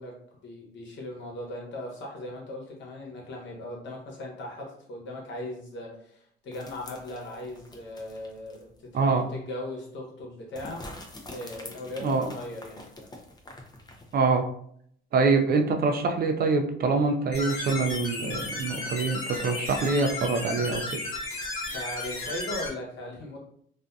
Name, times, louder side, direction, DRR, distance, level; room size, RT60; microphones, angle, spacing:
voice 1, 0.0-10.8 11.3-13.1 21.7-23.4, left 1 dB, 65° left, -1 dB, 1.0 m, -38 dB
sound 1, 6.5-8.8 9.1-9.2 10.6-14.2, left 1 dB, 20° left, 0.5 m, -46 dB
voice 2, 8.9-9.3 12.0-12.3 14.1-14.5 15.1-21.0, right 4 dB, 50° right, 5 dB, 0.4 m, -25 dB
sound 2, 17.3-22.7, left 2 dB, 90° left, 0.9 m, -34 dB
2.5 x 2.5 x 2.3 m, 0.66 s
cardioid pair, 90°, 20 cm